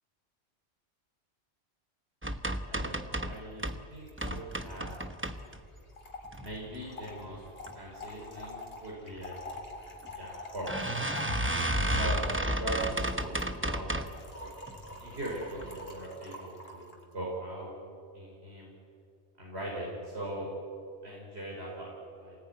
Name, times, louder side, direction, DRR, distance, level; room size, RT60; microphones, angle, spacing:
sound 1, 2.2-3.8 4.2-5.8 6.3-6.9 7.3-7.8 8.0-8.1 8.4-8.5 9.5-9.7 10.0-10.1 10.7-14.2 14.7-15.1 15.6-15.7 16.0-16.1, right 1 dB, 10° right, 1.0 m, -32 dB
voice 1, 2.7-3.6 3.9-5.0 6.4-7.4 7.7-9.4 10.1-10.9 12.0-13.9 14.4-14.5 15.0-17.7 18.1-18.7 19.4-20.5 21.0-22.4, right 1 dB, 70° right, -5 dB, 5.4 m, -40 dB
Trickle dribble / Fill (with liquid), 3.3-3.4 3.6-3.7 3.9-17.0, left 2 dB, 60° left, 3.2 m, -47 dB
27.5 x 19.0 x 9.6 m, 2.6 s
omnidirectional pair, 1.1 m